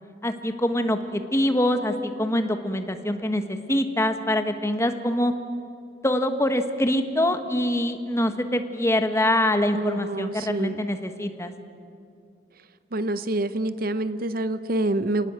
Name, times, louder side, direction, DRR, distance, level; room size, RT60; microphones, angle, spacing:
voice 1, 0.2-5.3 6.0-11.5, left 1 dB, 15° left, 7 dB, 1.3 m, -24 dB
voice 2, 9.7-10.8 12.9-15.3, right 2 dB, 50° right, 13 dB, 0.7 m, -27 dB
29.5 x 19.0 x 7.6 m, 2.5 s
head